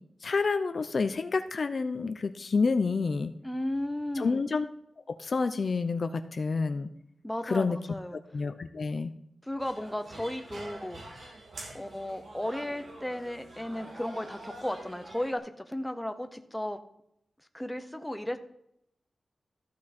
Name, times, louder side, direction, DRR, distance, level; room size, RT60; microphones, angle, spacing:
voice 1, 0.2-3.3 4.2-4.6 5.1-6.9 7.5-7.8 8.3-9.1, left 4 dB, 50° left, 10 dB, 0.6 m, -28 dB
voice 2, 3.4-4.5 7.2-8.2 9.4-11.0 11.7-16.8 17.5-18.4, left 1 dB, 5° left, 8 dB, 0.7 m, -34 dB
sound 1, 9.6-15.4, right 1 dB, 75° right, 2.6 m, -46 dB
14.0 x 6.1 x 4.3 m, 0.76 s
wide cardioid pair, 145°, 0 cm